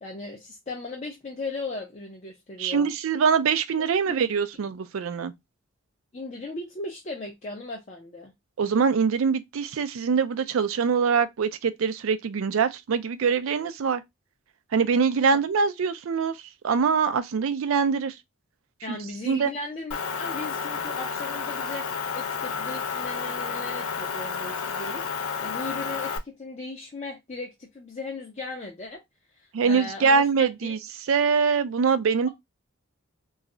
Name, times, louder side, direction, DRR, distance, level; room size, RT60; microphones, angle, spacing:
voice 1, 0.0-2.9 6.1-8.3 15.3-15.4 18.8-21.9 22.1-29.0 29.4-30.7, left 3 dB, 35° left, 0.5 m, -37 dB
voice 2, 2.6-5.3 8.6-14.0 14.7-16.4 16.6-18.1 18.9-19.0 19.3-19.5 29.5-30.8 31.1-32.3, right 5 dB, 75° right, 0.4 m, -23 dB
Motor vehicle (road) / Engine, 19.9-26.2, left 5 dB, 85° left, 0.4 m, -31 dB
2.3 x 2.0 x 3.6 m
head